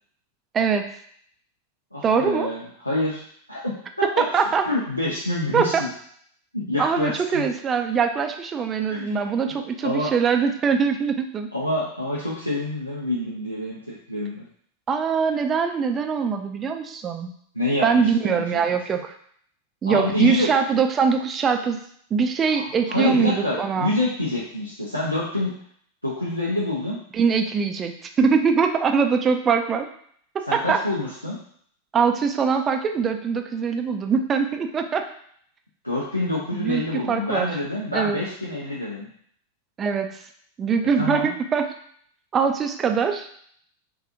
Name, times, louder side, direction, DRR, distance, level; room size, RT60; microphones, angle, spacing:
voice 1, 0.5-0.9 2.0-2.5 4.3-4.6 5.5-5.8 6.8-11.5 14.9-17.3 17.8-19.1 19.8-21.8 22.1-23.9 27.1-29.9 30.3-30.8 31.9-35.1 36.5-37.5 37.9-38.2 39.8-40.1 40.6-41.7 42.3-43.3, right 6 dB, 25° right, 6 dB, 0.3 m, -22 dB
voice 2, 1.9-3.2 3.5-3.7 4.2-4.3 4.7-5.9 6.5-7.5 8.9-9.3 9.8-10.1 11.5-14.4 17.5-18.6 19.9-20.5 22.5-25.5 26.0-27.0 30.5-31.4 35.8-39.1 41.0-41.3, left 1 dB, 90° left, -6 dB, 0.4 m, -27 dB
3.4 x 2.2 x 2.5 m, 0.63 s
figure-of-eight pair, 90°, 0 cm